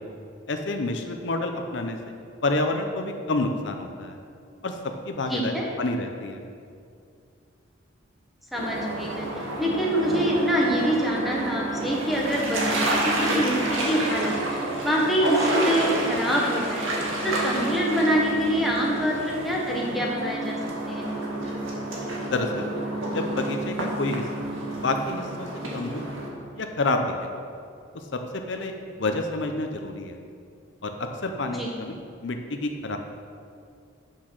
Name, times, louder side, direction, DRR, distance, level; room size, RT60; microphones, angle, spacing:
voice 1, 0.5-2.0 2.4-4.2 4.6-4.7 5.1-6.4 22.3-22.7 23.1-24.5 24.8-25.5 25.7-26.0 26.5-27.3 28.1-28.2 28.5-28.7 29.0-30.2 30.8-33.0, left 2 dB, 65° left, 5 dB, 0.6 m, -28 dB
voice 2, 5.3-5.6 8.5-16.9 17.2-20.6 20.9-21.1 31.5-31.7, equal, ahead, -3 dB, 1.3 m, -25 dB
sound 1, 8.5-26.3, right 1 dB, 90° right, 1.8 m, -29 dB
8.3 x 6.2 x 6.0 m, 2.4 s
head